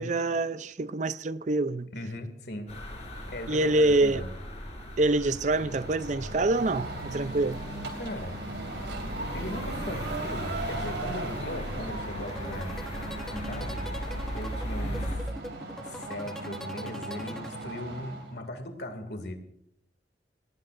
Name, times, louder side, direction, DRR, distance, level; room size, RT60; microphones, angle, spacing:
voice 1, 0.0-1.9 3.5-4.2 5.0-7.6 14.9-15.0, right 2 dB, 40° right, 0.5 m, -26 dB
voice 2, 1.9-2.7 3.3-4.3 8.0-8.4 9.3-12.8 13.3-13.9 14.3-15.3 15.8-19.4, left 1 dB, 65° left, 2.4 m, -38 dB
sound 1, 2.7-15.2, equal, 40° left, 5.0 m, -38 dB
sound 2, 5.5-18.3, right 2 dB, 85° right, 2.9 m, -38 dB
sound 3, 12.2-18.1, equal, 5° left, 1.0 m, -42 dB
26.0 x 19.0 x 2.6 m
head